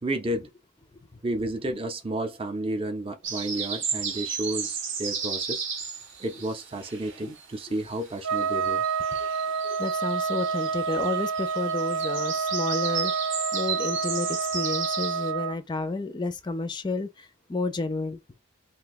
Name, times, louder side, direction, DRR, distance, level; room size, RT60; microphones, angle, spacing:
voice 1, 0.0-0.5 1.2-5.7 6.2-8.8 9.6-9.8, right 1 dB, 25° right, 0.6 m, -31 dB
sound 1, 3.2-7.6 7.8-15.3, right 6 dB, 60° right, 0.8 m, -34 dB
Trumpet, 8.2-15.6, right 5 dB, 85° right, 0.9 m, -28 dB
voice 2, 9.8-18.2, left 3 dB, 20° left, 0.4 m, -31 dB
2.6 x 2.2 x 3.9 m
head